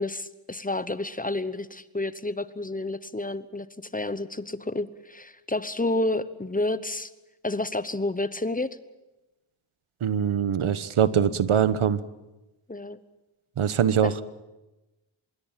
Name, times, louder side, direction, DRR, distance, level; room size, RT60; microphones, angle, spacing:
voice 1, 0.0-7.1 7.4-8.7 12.7-13.0 14.0-14.1, left 2 dB, 15° left, 14 dB, 1.0 m, -30 dB
voice 2, 10.0-12.0 13.6-14.1, right 8 dB, 85° right, 15 dB, 1.3 m, -23 dB
25.5 x 22.0 x 7.5 m, 1.0 s
wide cardioid pair, 145°, 48 cm